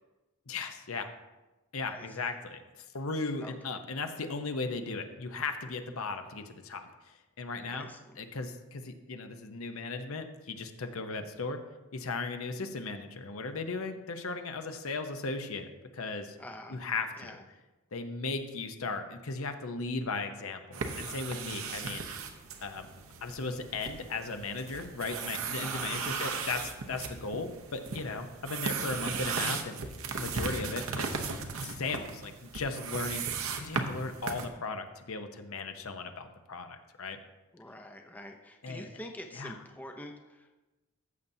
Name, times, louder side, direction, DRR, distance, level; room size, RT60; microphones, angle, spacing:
voice 1, 0.5-1.1 1.7-7.9 8.2-11.6 11.9-16.4 16.7-17.3 17.9-22.0 22.6-22.9 23.2-29.8 30.2-31.1 31.6-33.2 33.6-37.2 38.6-38.9 39.3-39.6, left 3 dB, 70° left, 7 dB, 0.8 m, -37 dB
voice 2, 1.8-2.3 3.4-3.5 7.7-8.0 16.4-16.8 17.2-17.4 25.6-25.9 26.2-26.4 37.5-40.6, left 1 dB, 5° left, 3 dB, 0.5 m, -46 dB
sound 1, 20.7-34.5, right 5 dB, 70° right, 0.8 m, -37 dB
14.5 x 7.0 x 2.7 m, 1.1 s
head